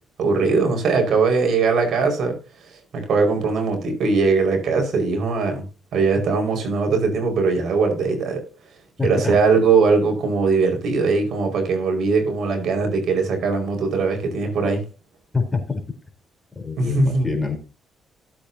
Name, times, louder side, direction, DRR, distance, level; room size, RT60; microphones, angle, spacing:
voice 1, 0.2-2.4 2.9-5.6 5.9-8.4 9.0-14.8 16.8-17.3, right 4 dB, 65° right, 4 dB, 5.1 m, -20 dB
voice 2, 9.0-9.4 15.3-15.8 16.6-17.5, left 4 dB, 15° left, 4 dB, 3.8 m, -25 dB
17.5 x 8.5 x 2.8 m, 0.32 s
cardioid pair, 90°, 0 cm